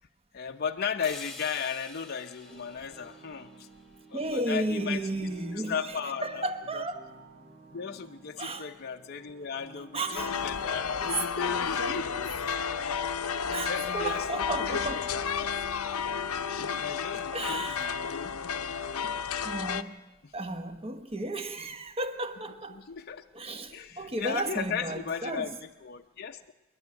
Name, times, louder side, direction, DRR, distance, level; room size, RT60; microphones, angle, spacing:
voice 1, 0.3-3.7 4.1-5.0 5.5-6.8 7.7-12.4 13.3-13.4 13.7-14.3 14.6-15.0 15.4-15.5 16.0-18.4 20.2-20.3 22.7-23.2 23.7-26.5, left 6 dB, 45° left, 0.6 m, -36 dB
sound 1, 1.0-5.0, left 2 dB, ahead, 1.7 m, -49 dB
sound 2, 2.4-11.4, right 1 dB, 55° right, 4.5 m, -53 dB
voice 2, 4.1-7.0 8.4-8.7 9.9-10.5 11.0-12.0 13.5-15.1 17.3-17.8 19.0-19.1 19.4-20.0 20.3-22.8 23.3-25.6, right 2 dB, 25° right, 1.1 m, -34 dB
wedding bells, 10.1-19.8, left 6 dB, 80° left, 0.8 m, -32 dB
27.0 x 10.5 x 9.5 m
head